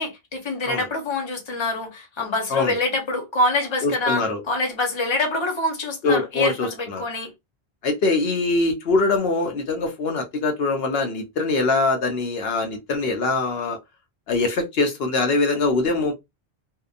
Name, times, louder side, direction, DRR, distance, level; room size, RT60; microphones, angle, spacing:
voice 1, 0.0-7.3, left 2 dB, 30° left, 0.8 m, -25 dB
voice 2, 3.8-4.4 6.0-7.0 7.8-13.8 14.3-16.1, left 3 dB, 75° left, 0.8 m, -23 dB
2.7 x 2.2 x 2.4 m
omnidirectional pair, 1.0 m